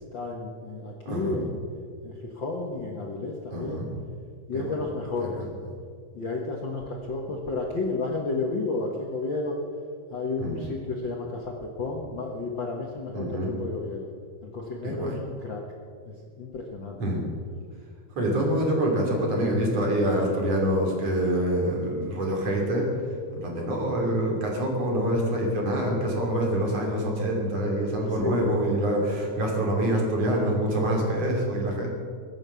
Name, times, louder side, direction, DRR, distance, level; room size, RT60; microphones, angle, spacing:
voice 1, 0.1-1.6 2.0-3.8 4.5-5.4 6.1-9.6 10.1-14.1 14.4-15.6 16.0-17.0 28.1-28.5, left 3 dB, 85° left, 0 dB, 1.0 m, -32 dB
voice 2, 1.1-1.4 3.5-3.9 4.5-4.8 5.2-5.5 10.4-10.6 13.1-13.5 14.8-15.2 17.0-17.2 18.2-22.9 23.3-31.9, right 1 dB, 40° right, 0 dB, 3.8 m, -26 dB
22.5 x 9.1 x 7.0 m, 2.2 s
omnidirectional pair, 4.5 m